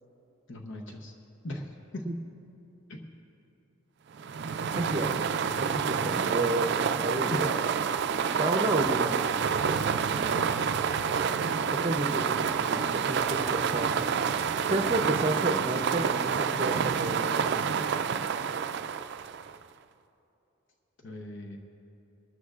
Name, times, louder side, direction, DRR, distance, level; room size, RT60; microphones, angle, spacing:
voice 1, 0.5-1.1 1.4-2.0 2.9-3.1 7.3-7.5 8.6-8.8 10.1-10.7 21.0-21.6, left 1 dB, 65° left, 2 dB, 0.8 m, -39 dB
sound 1, 4.2-19.6, right 6 dB, 55° right, 0.3 m, -28 dB
voice 2, 4.7-7.7 8.3-9.1 11.7-13.9 14.7-17.5, right 2 dB, 30° right, 6 dB, 0.7 m, -31 dB
24.5 x 13.0 x 2.4 m, 2.9 s
head